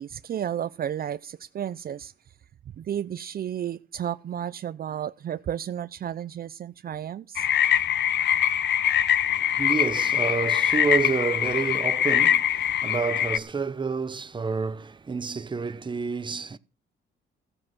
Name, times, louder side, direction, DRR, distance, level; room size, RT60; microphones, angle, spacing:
voice 1, 0.0-2.1 2.8-7.5, right 10 dB, 50° right, 0.6 m, -32 dB
sound 1, 7.4-13.4, left 10 dB, 60° left, 0.7 m, -23 dB
voice 2, 9.2-16.6, right 5 dB, 25° right, 0.8 m, -29 dB
15.0 x 7.6 x 6.1 m
cardioid pair, 90°, 20 cm